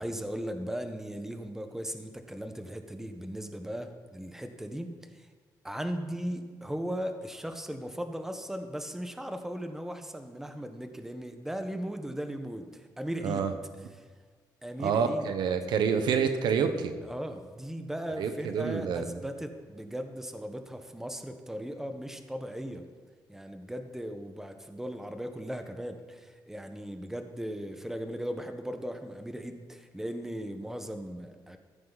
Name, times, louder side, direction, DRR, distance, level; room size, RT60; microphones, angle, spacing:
voice 1, 0.0-5.3 5.6-13.5 14.0-14.1 14.6-15.4 17.0-22.8 23.3-31.6, equal, 5° right, 6 dB, 1.3 m, -37 dB
voice 2, 14.8-16.9 18.2-19.1, right 6 dB, 85° right, 8 dB, 1.2 m, -28 dB
14.5 x 14.5 x 4.1 m, 1.5 s
cardioid pair, 110°, 7 cm